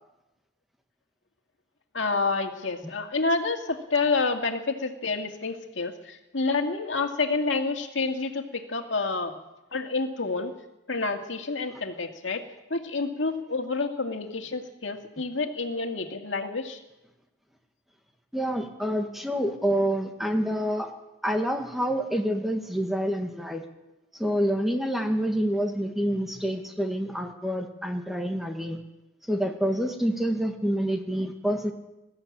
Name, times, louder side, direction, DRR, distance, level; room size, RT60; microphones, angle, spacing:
voice 1, 1.9-9.3 9.7-10.5 10.9-12.4 12.7-16.8, left 3 dB, 85° left, 4 dB, 2.2 m, -28 dB
voice 2, 18.3-20.9 21.2-23.6 24.2-28.8 29.3-31.7, equal, ahead, 3 dB, 1.8 m, -27 dB
21.0 x 14.5 x 8.6 m, 0.98 s
head